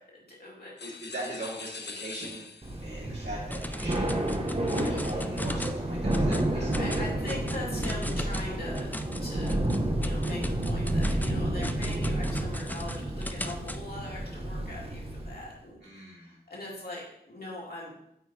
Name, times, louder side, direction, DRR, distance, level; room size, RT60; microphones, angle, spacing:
voice 1, 0.3-1.0 4.8-5.0 6.5-9.6 9.9-17.9, left 1 dB, 65° left, -5 dB, 2.4 m, -41 dB
sound 1, 0.8-2.9, left 5 dB, 80° left, 0.5 m, -43 dB
voice 2, 0.8-2.5 2.8-4.1 4.4-4.5 4.9-7.0 15.8-16.4, right 1 dB, 90° right, -5 dB, 2.4 m, -40 dB
Thunder / Rain, 2.6-15.5, right 1 dB, 35° right, 1.0 m, -30 dB
sound 2, 3.5-5.8 6.1-6.5 6.7-13.8, left 1 dB, 10° left, 0.4 m, -39 dB
8.3 x 3.0 x 4.8 m, 0.78 s
wide cardioid pair, 55°, 17 cm